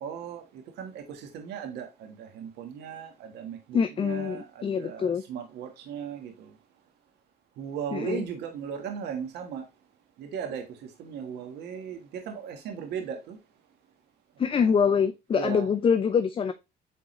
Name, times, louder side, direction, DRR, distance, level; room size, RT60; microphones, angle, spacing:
voice 1, 0.0-6.5 7.6-9.6 10.2-13.4 14.6-14.9 15.3-15.7, right 7 dB, 80° right, 1.5 m, -37 dB
voice 2, 3.7-5.2 7.9-8.2 14.4-16.5, left 6 dB, 30° left, 0.5 m, -25 dB
8.3 x 3.8 x 3.1 m
cardioid pair, 110°, 17 cm